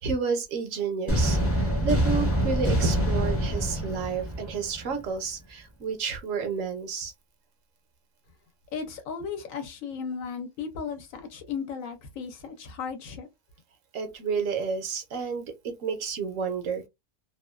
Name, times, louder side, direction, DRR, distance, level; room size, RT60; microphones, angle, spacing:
voice 1, 0.0-7.1 13.9-16.9, right 5 dB, 65° right, 0.9 m, -30 dB
sound 1, 1.1-5.0, equal, 15° left, 0.5 m, -25 dB
voice 2, 8.7-13.3, left 6 dB, 70° left, 1.0 m, -35 dB
2.7 x 2.2 x 2.3 m
omnidirectional pair, 1.5 m